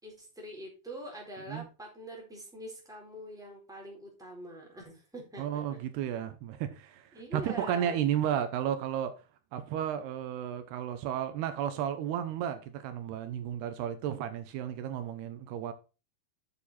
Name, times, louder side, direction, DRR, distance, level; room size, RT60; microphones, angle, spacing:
voice 1, 0.0-5.8 7.1-8.0, right 1 dB, ahead, 3.7 m, -44 dB
voice 2, 5.4-9.1 9.5-15.7, right 10 dB, 80° right, 2.9 m, -33 dB
9.1 x 7.1 x 4.2 m
omnidirectional pair, 4.7 m